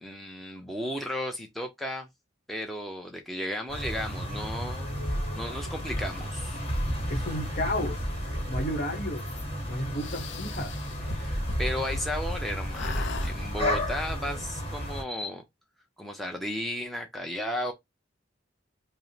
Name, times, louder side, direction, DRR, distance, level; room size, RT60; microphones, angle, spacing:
voice 1, 0.0-2.1 2.5-4.9 5.3-6.6 11.1-15.4 16.0-17.7, equal, ahead, 0.6 m, -34 dB
sound 1, 3.7-15.0, equal, 35° left, 1.5 m, -32 dB
voice 2, 7.1-8.0 8.5-9.3 9.7-10.7, left 1 dB, 50° left, 1.1 m, -32 dB
sound 2, 10.0-12.4 12.7-13.3, left 5 dB, 70° left, 0.5 m, -38 dB
5.2 x 2.1 x 3.1 m
head